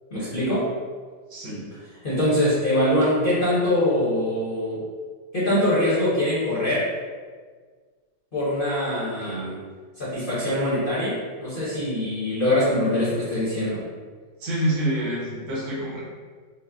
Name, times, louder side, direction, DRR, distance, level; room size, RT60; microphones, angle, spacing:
voice 1, 0.1-0.7 2.0-4.8 5.3-6.8 8.3-9.4 10.0-13.8, left 1 dB, 40° left, -10 dB, 0.8 m, -23 dB
voice 2, 1.3-1.6 9.2-9.6 14.4-16.0, right 1 dB, 85° right, -6 dB, 1.7 m, -27 dB
5.2 x 2.1 x 2.3 m, 1.5 s
omnidirectional pair, 2.0 m